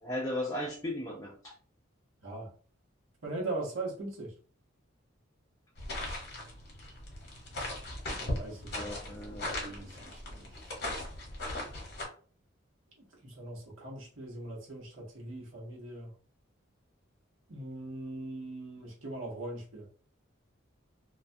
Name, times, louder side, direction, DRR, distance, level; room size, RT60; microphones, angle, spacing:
voice 1, 0.0-1.5 8.7-9.5, left 1 dB, 20° left, -3 dB, 0.4 m, -36 dB
voice 2, 3.2-4.3 8.1-10.2 13.2-16.1 17.5-19.8, right 2 dB, 90° right, -2 dB, 0.9 m, -40 dB
sound 1, 5.8-12.1, left 1 dB, 55° left, 0.9 m, -38 dB
2.3 x 2.2 x 2.6 m, 0.42 s
head